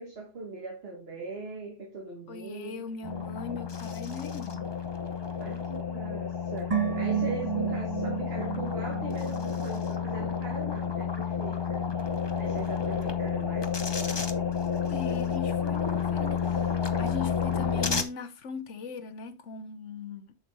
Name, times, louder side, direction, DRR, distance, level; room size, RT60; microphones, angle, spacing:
voice 1, 0.0-2.8 5.4-6.7 6.9-11.9 12.4-14.3, right 2 dB, 55° right, 1.6 m, -40 dB
voice 2, 2.3-4.7 14.9-20.4, left 5 dB, 80° left, 1.3 m, -39 dB
sound 1, 3.0-18.0, left 7 dB, 25° left, 0.7 m, -30 dB
sound 2, 6.7-10.0 10.3-10.4, right 9 dB, 30° right, 1.2 m, -32 dB
7.2 x 6.7 x 3.2 m
omnidirectional pair, 1.2 m